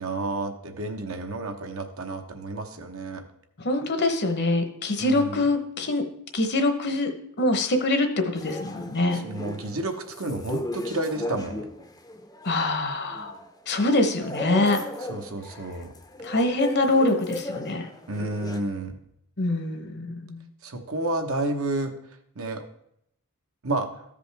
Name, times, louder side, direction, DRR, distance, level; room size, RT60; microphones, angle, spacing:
voice 1, 0.0-3.2 5.0-5.4 9.2-11.6 15.1-15.9 18.1-19.0 20.6-21.9 22.4-22.6 23.6-23.9, right 2 dB, 65° right, 5 dB, 1.0 m, -30 dB
voice 2, 3.6-6.0 6.3-9.2 12.4-13.4 13.7-14.8 16.2-17.9 19.4-20.5, left 2 dB, 50° left, 7 dB, 1.0 m, -24 dB
sound 1, 8.3-18.6, left 1 dB, 20° left, 0.6 m, -36 dB
14.0 x 5.2 x 3.4 m, 0.74 s
head